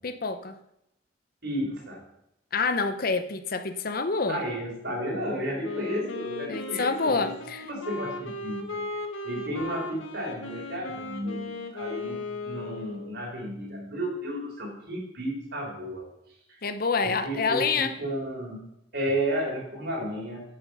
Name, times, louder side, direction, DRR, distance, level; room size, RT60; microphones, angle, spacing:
voice 1, 0.0-0.6 2.5-4.4 6.5-7.7 16.6-17.9, left 4 dB, 45° left, 9 dB, 0.7 m, -27 dB
voice 2, 1.4-2.0 4.3-7.3 7.7-8.8 9.2-16.1 16.5-16.6 17.0-18.6 18.9-20.4, right 1 dB, 55° right, -1 dB, 3.9 m, -33 dB
Wind instrument woodwind instrument, 5.6-13.2, left 3 dB, 85° left, 1.5 m, -37 dB
10.0 x 7.9 x 5.5 m, 0.81 s
head